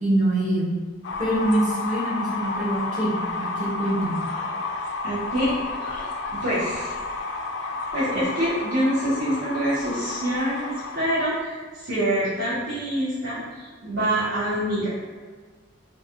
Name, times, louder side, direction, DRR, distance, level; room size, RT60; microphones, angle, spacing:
voice 1, 0.0-0.8 1.2-4.2, right 1 dB, 40° right, -7 dB, 0.9 m, -24 dB
sound 1, 1.0-11.4, left 3 dB, 70° left, 0.4 m, -31 dB
voice 2, 5.0-6.9 7.6-15.0, right 1 dB, 75° right, -11 dB, 1.0 m, -26 dB
3.1 x 2.3 x 2.8 m, 1.5 s
head